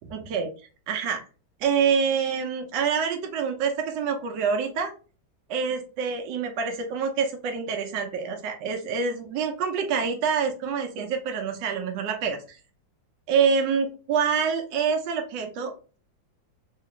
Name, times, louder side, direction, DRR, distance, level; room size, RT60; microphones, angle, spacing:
voice 1, 0.1-1.2 1.6-4.9 5.5-12.6 13.3-16.0, right 6 dB, 70° right, 4 dB, 1.3 m, -26 dB
3.2 x 2.9 x 2.9 m, 0.37 s
omnidirectional pair, 2.1 m